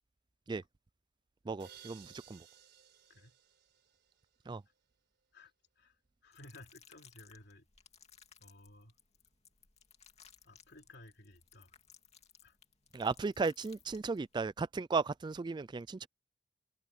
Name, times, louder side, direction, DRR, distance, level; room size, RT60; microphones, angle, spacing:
voice 1, 1.5-2.4 4.5-4.6 12.9-16.1, right 4 dB, 25° right, 0.3 m, -35 dB
sound 1, 1.6-4.4, right 8 dB, 65° right, 4.3 m, -58 dB
voice 2, 5.3-7.7 8.4-8.9 10.4-11.7 12.4-12.6, left 1 dB, 65° left, 3.3 m, -57 dB
sound 2, 6.3-14.4, left 7 dB, 35° left, 2.3 m, -62 dB
head